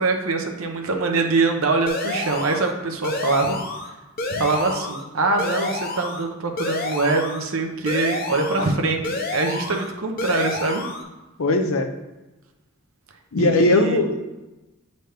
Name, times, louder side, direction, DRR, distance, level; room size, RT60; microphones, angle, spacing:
voice 1, 0.0-3.6 4.3-10.8 13.4-14.0, right 3 dB, 85° right, 3 dB, 0.8 m, -23 dB
sound 1, 1.9-2.7 3.0-3.9 4.2-5.0 5.4-6.2 6.6-7.4 7.9-8.7 9.0-9.9 10.2-11.0, left 3 dB, 45° left, 0.7 m, -29 dB
voice 2, 11.4-11.9 13.3-14.2, left 2 dB, 85° left, 6 dB, 0.7 m, -19 dB
7.8 x 4.0 x 3.4 m, 1.1 s
head